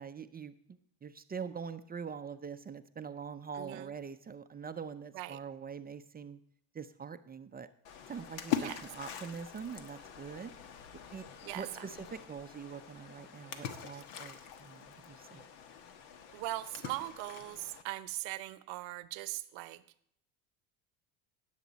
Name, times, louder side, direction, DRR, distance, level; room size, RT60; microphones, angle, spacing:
voice 1, 0.0-6.4 6.7-7.7 8.1-10.5 11.1-11.2 11.5-15.5, right 6 dB, 20° right, 10 dB, 0.6 m, -44 dB
voice 2, 3.6-3.9 5.1-5.4 8.6-8.8 11.4-11.9 16.3-19.8, right 18 dB, 65° right, 15 dB, 1.0 m, -40 dB
Splash splatter, 7.8-17.8, left 10 dB, 70° left, 1.4 m, -43 dB
18.0 x 7.4 x 4.1 m, 0.69 s
supercardioid pair, 90°, 49 cm